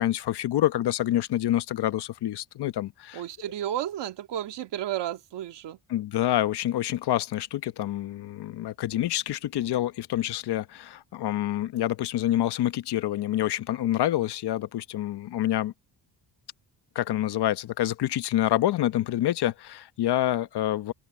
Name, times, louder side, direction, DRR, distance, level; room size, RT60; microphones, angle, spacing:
voice 1, 0.0-3.2 5.9-15.7 16.9-20.9, left 13 dB, 65° left, 1.0 m, -27 dB
voice 2, 3.1-5.8, right 11 dB, 75° right, 1.9 m, -32 dB
open air
cardioid pair, 120°, 42 cm